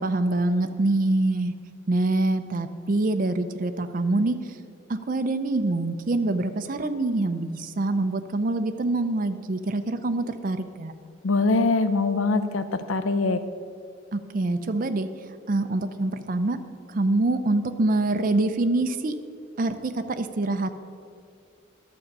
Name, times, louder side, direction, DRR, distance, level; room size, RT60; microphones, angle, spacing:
voice 1, 0.0-1.5 1.9-4.4 4.9-10.9 14.1-15.1 15.5-16.6 16.9-19.2 19.6-20.7, right 2 dB, 40° right, 8 dB, 0.5 m, -25 dB
voice 2, 11.2-13.4, left 3 dB, 75° left, 11 dB, 0.5 m, -23 dB
11.5 x 7.0 x 5.3 m, 2.3 s
head